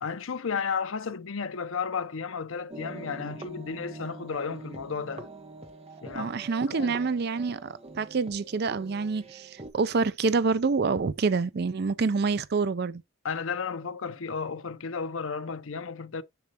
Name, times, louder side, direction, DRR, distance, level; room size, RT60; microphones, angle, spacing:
voice 1, 0.0-5.3 6.0-6.3 6.7-7.0 13.2-16.2, left 5 dB, 75° left, 0.7 m, -33 dB
sound 1, 2.7-9.7, right 2 dB, 30° right, 1.1 m, -45 dB
voice 2, 6.1-13.0, right 4 dB, 50° right, 0.4 m, -27 dB
7.0 x 6.4 x 2.8 m
head